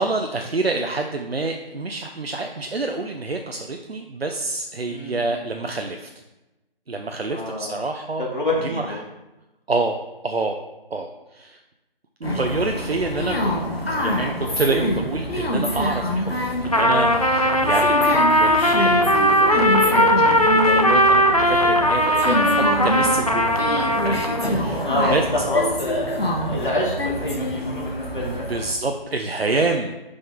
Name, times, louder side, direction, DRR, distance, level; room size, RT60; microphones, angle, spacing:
voice 1, 0.0-6.1 6.9-8.3 8.6-9.0 9.7-10.0 10.2-10.6 10.9-11.6 12.2-13.6 14.0-16.3 16.6-23.6 24.0-25.2 28.2-29.9, right 3 dB, 90° right, 4 dB, 0.7 m, -27 dB
voice 2, 4.9-5.4 7.3-7.9 8.2-9.0 24.8-28.5, left 1 dB, 55° left, -3 dB, 2.3 m, -26 dB
sound 1, 12.2-28.7, equal, 80° left, 1.5 m, -26 dB
Trumpet, 16.6-24.6, equal, 40° left, 0.4 m, -18 dB
6.8 x 5.3 x 3.6 m, 1.0 s
figure-of-eight pair, 165°, 30 cm